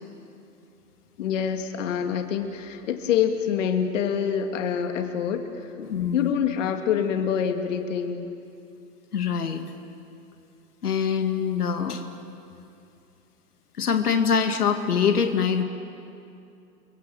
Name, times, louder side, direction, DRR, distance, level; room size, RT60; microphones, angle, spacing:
voice 1, 1.2-5.4 6.1-8.3, left 8 dB, 50° left, 5 dB, 2.3 m, -26 dB
voice 2, 5.8-6.3 9.1-9.6 10.8-12.0 13.8-15.6, left 7 dB, 70° left, 5 dB, 2.3 m, -24 dB
29.0 x 23.5 x 7.8 m, 2.6 s
hypercardioid pair, 125°, 48 cm